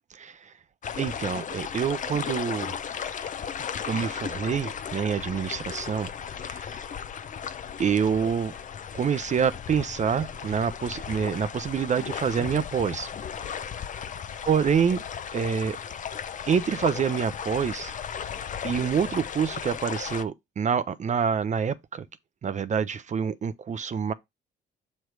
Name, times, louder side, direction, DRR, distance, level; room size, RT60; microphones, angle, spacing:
voice 1, 0.2-0.5 1.0-2.8 3.9-6.1 6.5-6.7 7.8-8.5 8.9-13.1 14.5-15.0 15.3-15.8 16.5-17.9 18.6-22.1 22.4-24.1, right 7 dB, 35° right, 0.5 m, -26 dB
sound 1, 0.8-20.2, left 7 dB, 40° left, 0.5 m, -35 dB
6.3 x 3.2 x 4.6 m
cardioid pair, 90°, 20 cm